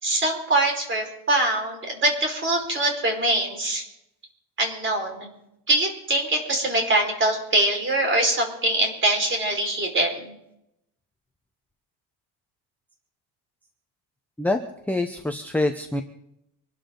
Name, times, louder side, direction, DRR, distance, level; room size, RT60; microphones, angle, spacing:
voice 1, 0.0-3.8 4.6-5.3 5.7-10.3, right 1 dB, 30° right, 3 dB, 4.9 m, -23 dB
voice 2, 14.9-16.0, left 2 dB, 5° left, 4 dB, 0.8 m, -25 dB
25.0 x 12.5 x 3.9 m, 0.79 s
cardioid pair, 150°, 41 cm